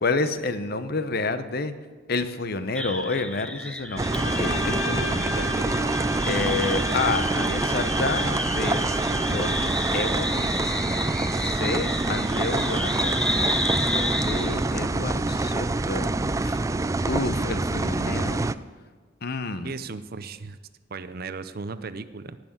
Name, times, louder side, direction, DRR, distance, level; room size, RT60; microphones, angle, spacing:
voice 1, 0.0-1.7 2.1-5.3 6.2-8.9 9.3-10.5 11.4-13.6 13.9-16.6 17.0-18.5 19.2-19.7, left 3 dB, 50° left, 11 dB, 0.9 m, -29 dB
sound 1, 2.7-14.7, left 1 dB, 5° left, 0.7 m, -31 dB
Bowed string instrument, 4.0-9.8, left 2 dB, 85° left, 2.2 m, -34 dB
sound 2, 4.0-18.5, right 2 dB, 15° right, 0.3 m, -26 dB
voice 2, 5.1-5.8 19.6-20.6 20.9-22.4, right 4 dB, 50° right, 12 dB, 0.6 m, -36 dB
17.5 x 6.2 x 8.7 m, 1.5 s
head